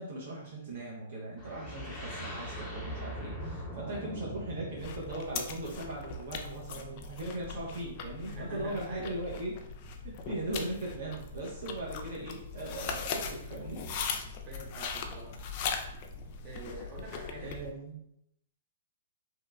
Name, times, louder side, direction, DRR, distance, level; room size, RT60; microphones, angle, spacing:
voice 1, 0.0-9.6 10.0-13.9 17.4-18.0, right 1 dB, 65° right, -4 dB, 0.6 m, -39 dB
sound 1, 1.4-6.2, equal, 20° left, 0.8 m, -41 dB
sound 2, 4.8-17.7, left 5 dB, 45° left, 0.3 m, -40 dB
voice 2, 8.3-9.1 14.5-15.4 16.4-17.5, right 1 dB, 30° right, -3 dB, 0.9 m, -45 dB
2.8 x 2.2 x 2.2 m, 0.78 s
hypercardioid pair, 120°, 0 cm